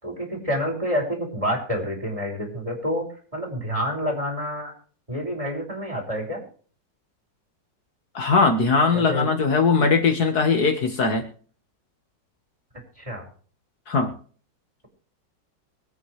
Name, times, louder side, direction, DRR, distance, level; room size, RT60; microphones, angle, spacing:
voice 1, 0.0-3.1 3.3-4.7 5.1-6.4 8.9-9.3 13.0-13.3, equal, 15° right, 0 dB, 5.8 m, -28 dB
voice 2, 8.1-11.2 13.9-14.1, left 4 dB, 60° left, 5 dB, 2.0 m, -20 dB
24.0 x 9.2 x 3.3 m, 0.43 s
omnidirectional pair, 2.0 m